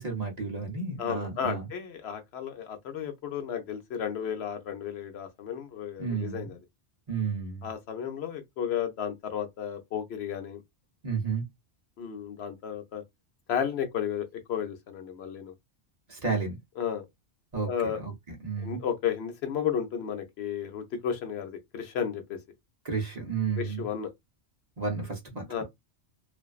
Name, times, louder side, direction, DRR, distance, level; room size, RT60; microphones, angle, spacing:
voice 1, 0.0-1.7 6.0-6.6 7.1-7.7 11.0-11.4 16.1-16.6 17.5-18.8 22.8-23.9 24.8-25.6, right 5 dB, 45° right, 0.7 m, -32 dB
voice 2, 1.0-6.6 7.6-10.6 12.0-13.0 13.5-15.5 16.8-17.0 17.6-18.0 18.6-22.4 23.6-24.1 25.5-25.6, left 8 dB, 70° left, 0.9 m, -33 dB
2.5 x 2.2 x 2.3 m
omnidirectional pair, 1.2 m